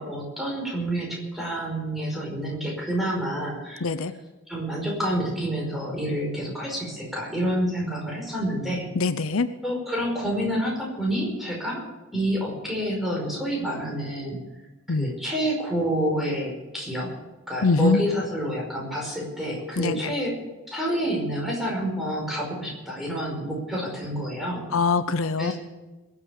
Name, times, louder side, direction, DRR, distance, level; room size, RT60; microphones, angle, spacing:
voice 1, 0.0-3.8 4.5-8.9 9.6-11.8 12.1-14.4 14.9-17.1 17.5-20.3 20.7-24.6 25.4-25.5, right 1 dB, ahead, -2 dB, 5.0 m, -28 dB
voice 2, 3.8-4.1 8.9-9.5 14.9-15.1 17.6-18.0 19.8-20.1 24.7-25.5, left 4 dB, 70° left, 12 dB, 0.7 m, -23 dB
21.5 x 8.5 x 7.2 m, 1.1 s
head